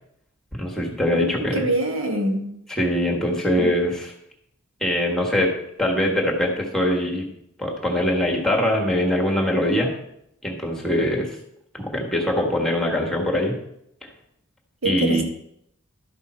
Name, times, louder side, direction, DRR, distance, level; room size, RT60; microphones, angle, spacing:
voice 1, 0.5-1.6 2.8-4.1 4.8-5.5 5.8-7.2 7.6-9.9 10.4-11.4 11.7-13.6 14.0-14.1 14.8-15.2, left 1 dB, 5° left, -1 dB, 1.4 m, -22 dB
voice 2, 1.1-2.5 3.6-3.7 14.8-15.2, right 1 dB, 65° right, 2 dB, 1.4 m, -25 dB
12.0 x 5.6 x 4.3 m, 0.76 s
head